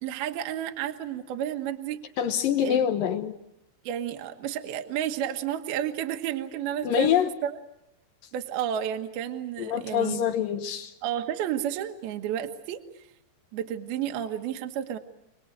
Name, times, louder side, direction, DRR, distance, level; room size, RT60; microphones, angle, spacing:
voice 1, 0.0-2.0 2.6-2.8 3.8-7.6 8.3-10.2 11.0-12.8 13.5-15.0, right 10 dB, 65° right, 5 dB, 2.8 m, -31 dB
voice 2, 2.2-3.3 6.8-7.3 9.6-10.9, left 9 dB, 70° left, 7 dB, 2.2 m, -25 dB
28.5 x 20.0 x 8.0 m, 0.86 s
omnidirectional pair, 5.4 m